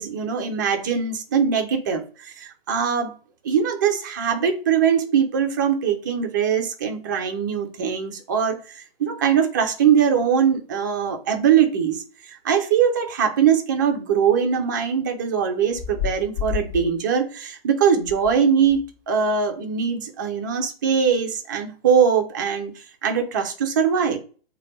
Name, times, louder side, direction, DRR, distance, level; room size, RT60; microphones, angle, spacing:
voice 1, 0.0-3.1 3.4-12.0 12.3-18.8 19.1-22.7 23.0-24.2, right 7 dB, 20° right, 0.4 m, -21 dB
sound 1, 15.7-16.9 18.0-18.3 18.6-18.8, left 8 dB, 40° left, 1.4 m, -30 dB
3.2 x 2.2 x 4.0 m
figure-of-eight pair, 135°, 31 cm